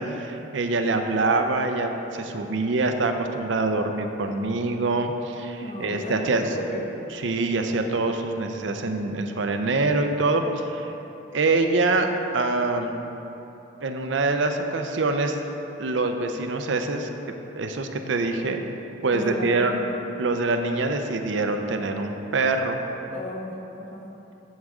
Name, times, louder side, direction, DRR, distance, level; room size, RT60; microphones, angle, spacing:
voice 1, 0.0-6.5 7.1-10.9 11.3-12.1 12.3-12.9 13.8-15.4 15.8-17.1 17.5-18.6 19.0-19.7 20.2-22.8, right 3 dB, 75° right, 5 dB, 0.5 m, -25 dB
voice 2, 5.6-6.8 19.1-19.9 23.1-24.0, left 1 dB, 35° left, 0 dB, 0.9 m, -34 dB
9.2 x 6.4 x 3.7 m, 3.0 s
head